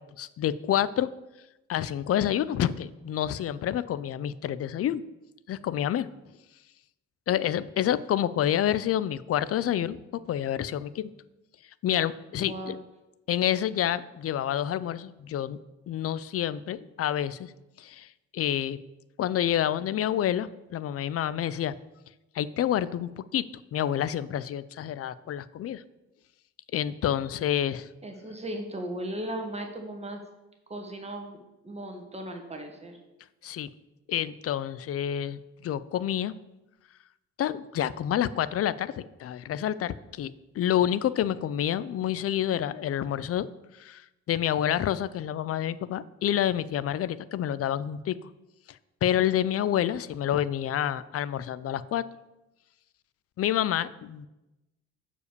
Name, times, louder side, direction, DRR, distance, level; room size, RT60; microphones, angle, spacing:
voice 1, 0.2-1.1 1.7-5.0 5.5-6.1 7.3-11.1 11.8-12.8 13.3-15.6 15.9-17.5 17.8-18.1 18.3-18.8 19.2-21.7 22.4-23.5 23.7-25.8 26.7-27.9 33.4-33.7 34.1-36.3 37.4-43.5 43.8-44.0 44.3-48.2 49.0-52.0 53.4-54.3, left 11 dB, 50° left, 17 dB, 0.4 m, -28 dB
voice 2, 12.3-12.8 28.0-30.2 30.7-33.0, right 1 dB, 20° right, 2 dB, 1.5 m, -37 dB
6.5 x 5.0 x 6.7 m, 0.99 s
cardioid pair, 90°, 30 cm